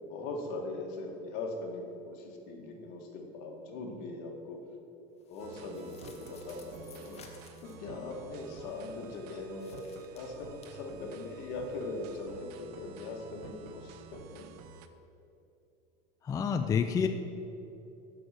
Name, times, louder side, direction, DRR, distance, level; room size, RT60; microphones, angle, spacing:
voice 1, 0.0-4.6 5.3-7.2 7.6-14.5, left 2 dB, 65° left, 2 dB, 1.6 m, -40 dB
sound 1, 5.2-7.9 9.5-10.7, left 6 dB, 35° left, 1.0 m, -57 dB
sound 2, 5.4-14.9, right 6 dB, 85° right, 0.7 m, -51 dB
voice 2, 16.2-17.1, left 6 dB, 15° left, 6 dB, 0.3 m, -28 dB
7.6 x 6.3 x 6.4 m, 2.9 s
supercardioid pair, 135°, 19 cm